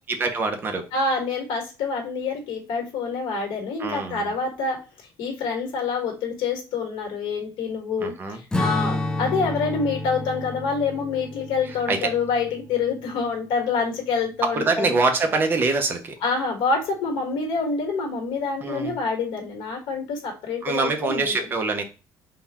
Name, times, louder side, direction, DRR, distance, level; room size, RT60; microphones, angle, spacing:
voice 1, 0.1-0.9 3.8-4.3 8.0-8.4 11.9-12.1 14.4-16.1 18.6-19.0 20.6-21.8, right 3 dB, 25° right, 5 dB, 0.7 m, -24 dB
voice 2, 0.9-4.8 5.2-15.0 16.2-21.3, left 4 dB, 80° left, 2 dB, 1.4 m, -27 dB
Strum, 8.5-13.2, left 2 dB, 10° left, 0.4 m, -30 dB
3.8 x 2.3 x 4.1 m, 0.31 s
cardioid pair, 155°, 8 cm